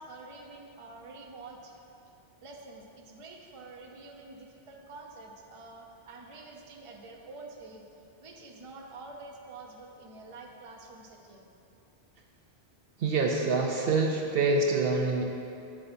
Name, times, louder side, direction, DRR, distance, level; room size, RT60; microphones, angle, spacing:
voice 1, 0.0-1.7 2.4-7.8 8.2-11.5, right 3 dB, 35° right, 0 dB, 0.7 m, -47 dB
voice 2, 13.0-15.2, right 3 dB, 65° right, 1 dB, 0.8 m, -26 dB
8.8 x 7.9 x 2.6 m, 2.7 s
omnidirectional pair, 1.1 m